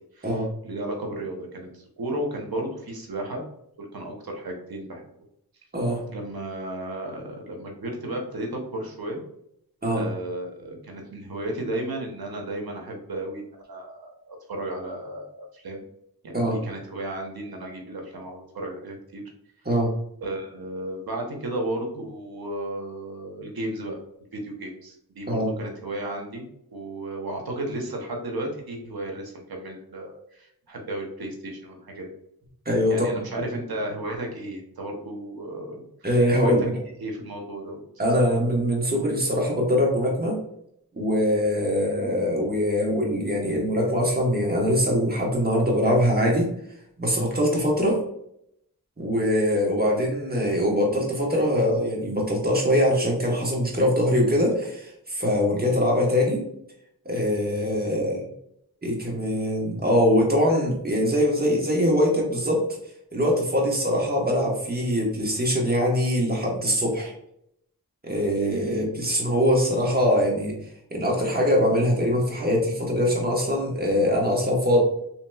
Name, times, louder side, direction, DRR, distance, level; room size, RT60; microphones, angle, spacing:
voice 1, 0.1-3.4 3.8-5.0 6.1-9.2 10.0-15.8 16.2-19.2 20.2-24.0 24.3-32.1 32.9-35.8 36.4-36.5 37.0-37.8, right 1 dB, 75° right, 1 dB, 0.8 m, -34 dB
voice 2, 32.6-33.1 36.0-36.7 38.0-40.4 40.9-46.5 47.0-48.0 49.0-56.4 57.0-58.2 58.8-62.7 63.1-67.1 68.0-70.6 70.9-74.8, equal, 25° right, -2 dB, 1.1 m, -23 dB
3.2 x 2.9 x 2.2 m, 0.74 s
wide cardioid pair, 55°, 37 cm